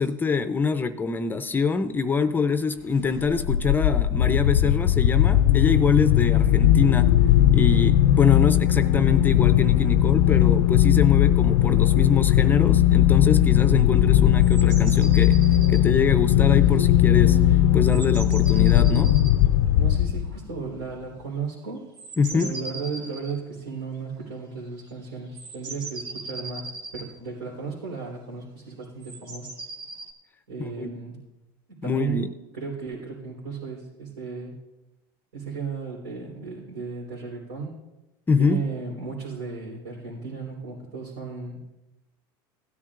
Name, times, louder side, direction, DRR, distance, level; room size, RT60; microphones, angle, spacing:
voice 1, 0.0-7.1 7.5-15.4 15.7-17.4 17.7-19.2 22.2-22.5 30.6-30.9 31.8-32.3 38.3-38.6, left 4 dB, 15° left, 11 dB, 0.5 m, -25 dB
sound 1, 3.1-20.5, left 12 dB, 85° left, 0.4 m, -18 dB
sound 2, 14.4-15.9 17.1-17.2 17.5-17.6 17.8-19.4 21.9-23.4 24.6-24.7 24.9-25.0 25.3-27.1 29.0-30.1, right 2 dB, 40° right, 1.5 m, -39 dB
voice 2, 19.8-21.9 22.3-29.5 30.5-31.2 31.8-32.2 32.5-34.6 35.3-37.8 38.4-41.7, right 5 dB, 80° right, -6 dB, 3.6 m, -35 dB
17.0 x 10.0 x 2.5 m, 0.97 s
supercardioid pair, 125°, 12 cm